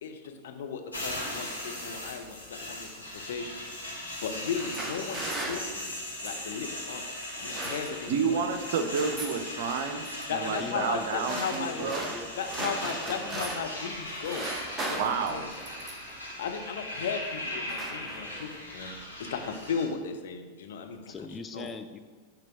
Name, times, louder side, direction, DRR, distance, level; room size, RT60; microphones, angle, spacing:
voice 1, 0.0-3.7 4.2-5.9 6.2-7.1 7.4-8.5 10.3-11.8 12.4-15.5 16.4-21.1 21.5-21.7, left 6 dB, 60° left, 5 dB, 0.6 m, -36 dB
sound 1, 0.9-19.9, left 1 dB, 85° left, 1.3 m, -39 dB
sound 2, 4.3-6.5 7.2-8.3 8.5-9.4 9.9-10.3 11.0-13.8 14.1-16.2 16.9-17.2 17.5-18.5, right 2 dB, 15° right, 0.8 m, -38 dB
voice 2, 8.1-12.1 14.9-15.4, right 5 dB, 50° right, 7 dB, 0.6 m, -30 dB
voice 3, 10.6-12.3 12.7-12.8 13.1-13.5 21.1-22.0, left 4 dB, 20° left, 7 dB, 0.3 m, -41 dB
5.9 x 3.4 x 5.6 m, 1.5 s
figure-of-eight pair, 90°, 0 cm